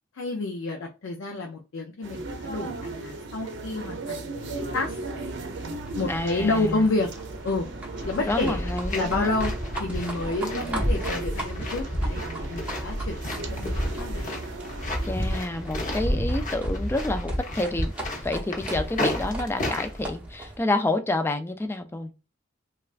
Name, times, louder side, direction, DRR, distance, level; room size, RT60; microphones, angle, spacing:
voice 1, 0.1-5.0 5.9-7.1 7.4-7.7 8.0-9.5 9.8-12.2 12.5-14.4, left 2 dB, 85° left, 0.5 m, -29 dB
sound 1, 2.0-15.4, right 2 dB, 65° right, 0.6 m, -36 dB
Livestock farm animals working animals, 4.5-20.6, right 1 dB, 10° right, 0.8 m, -41 dB
voice 2, 6.1-6.8 8.2-9.3 10.5-10.9 15.0-22.1, left 2 dB, 10° left, 0.3 m, -29 dB
sound 2, 8.0-20.1, equal, 40° left, 0.8 m, -30 dB
3.2 x 2.3 x 2.4 m
head